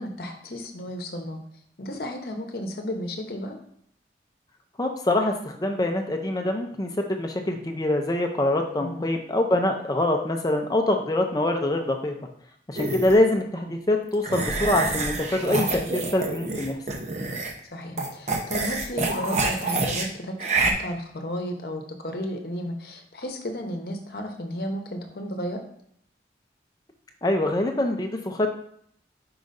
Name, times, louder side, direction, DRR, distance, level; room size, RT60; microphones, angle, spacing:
voice 1, 0.0-1.4 1.8-3.6 8.8-9.1 17.7-25.6, equal, 60° left, 4 dB, 0.8 m, -33 dB
voice 2, 4.8-12.1 12.7-16.8 27.2-28.5, left 1 dB, 20° left, 4 dB, 0.5 m, -24 dB
sound 1, 12.7-13.2 14.2-17.6 18.0-20.1 20.4-20.7, right 3 dB, 40° right, 0.7 m, -27 dB
4.8 x 3.9 x 5.2 m, 0.67 s
head